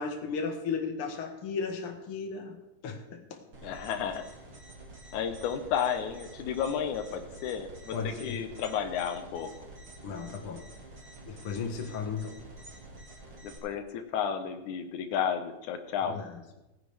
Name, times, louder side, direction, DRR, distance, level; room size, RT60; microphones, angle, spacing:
voice 1, 0.0-2.5 2.8-3.4 7.9-8.4 10.0-10.7 11.3-12.4 16.1-16.6, left 5 dB, 50° left, 3 dB, 2.2 m, -35 dB
sound 1, 3.5-13.6, right 2 dB, 40° right, 2.7 m, -48 dB
voice 2, 3.6-4.3 5.1-9.5 13.4-16.2, left 8 dB, 90° left, 7 dB, 2.4 m, -32 dB
18.0 x 10.0 x 3.4 m, 1.0 s
omnidirectional pair, 3.3 m